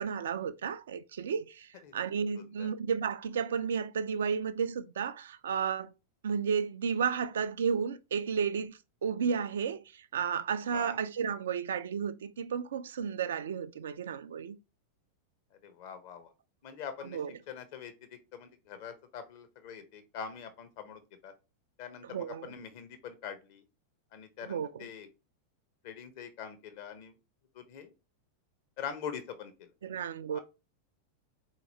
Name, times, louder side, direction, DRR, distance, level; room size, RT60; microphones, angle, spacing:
voice 1, 0.0-5.9 6.2-14.6 17.1-17.3 22.1-22.5 24.5-24.7 29.8-30.4, right 6 dB, 65° right, 0.3 m, -33 dB
voice 2, 2.4-2.7 10.7-11.0 15.5-16.3 16.6-17.2 17.5-21.3 21.8-23.6 24.1-25.1 25.8-27.2 27.5-27.9 28.8-29.7 30.3-30.4, left 7 dB, 50° left, 0.8 m, -44 dB
4.1 x 2.9 x 2.8 m
figure-of-eight pair, 90°, 0 cm